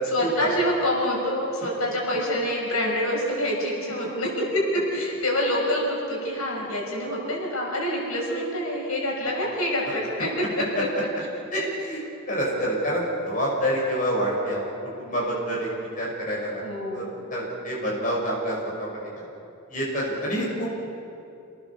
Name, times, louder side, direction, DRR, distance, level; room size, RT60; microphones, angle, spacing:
voice 1, 0.1-10.9 16.6-17.1, equal, 70° left, -2 dB, 6.1 m, -26 dB
voice 2, 11.5-12.0 12.3-14.6 15.0-15.7 16.0-16.6 16.9-19.3 19.7-20.8, equal, 35° left, -4 dB, 5.6 m, -27 dB
28.0 x 19.5 x 7.1 m, 2.6 s
head